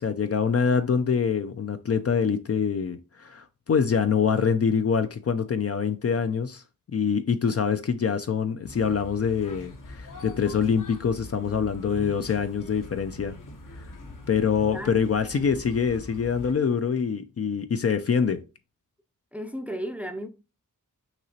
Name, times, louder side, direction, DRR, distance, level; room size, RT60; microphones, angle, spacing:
voice 1, 0.0-6.6 6.9-13.4 13.8-13.9 14.3-18.4, left 6 dB, 45° left, 0.5 m, -25 dB
sound 1, 8.6-16.5, left 1 dB, 65° left, 1.2 m, -43 dB
voice 2, 14.6-15.1 15.3-15.5 19.3-20.3, equal, 5° right, 0.5 m, -35 dB
5.9 x 2.9 x 2.8 m
wide cardioid pair, 70°, 34 cm